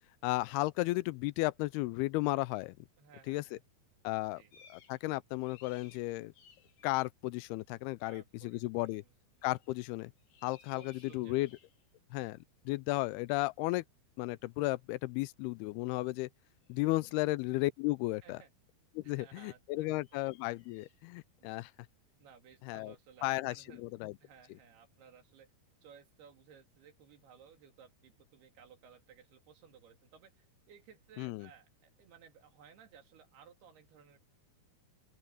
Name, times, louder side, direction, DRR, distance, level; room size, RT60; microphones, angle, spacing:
voice 1, 0.2-2.8 3.3-3.6 4.0-4.4 4.7-6.3 6.8-9.0 9.4-10.1 10.4-11.5 12.1-12.4 12.7-13.8 14.2-16.3 16.7-18.4 19.0-21.7 22.6-22.9 23.2-24.1 31.2-31.5, left 20 dB, 85° left, 2.5 m, -34 dB
voice 2, 3.0-3.6 4.3-4.5 8.0-9.2 10.7-11.5 12.9-13.0 16.9-17.2 18.2-18.5 19.0-20.2 21.4-21.6 22.2-23.9 24.2-25.5 25.8-34.2, right 7 dB, 80° right, 4.5 m, -59 dB
sound 1, 4.5-5.1 5.3-6.9 9.4-9.8 10.2-11.9 14.6-14.7 16.6-17.0 19.9-21.0, left 7 dB, 70° left, 4.4 m, -62 dB
open air
omnidirectional pair, 4.5 m